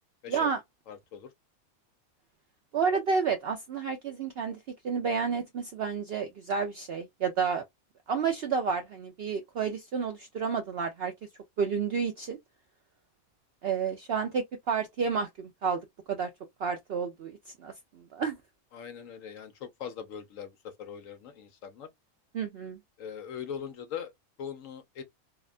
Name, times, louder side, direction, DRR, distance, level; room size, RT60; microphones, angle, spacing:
voice 1, 0.3-0.6 2.7-4.6 4.8-7.6 8.1-11.1 11.6-12.4 13.6-15.8 16.1-16.3 16.6-18.4 22.3-22.8, right 6 dB, 70° right, 0.6 m, -30 dB
voice 2, 0.9-1.3 18.7-21.9 23.0-24.1 24.4-25.0, left 8 dB, 70° left, 1.0 m, -41 dB
2.7 x 2.1 x 2.3 m
omnidirectional pair, 1.5 m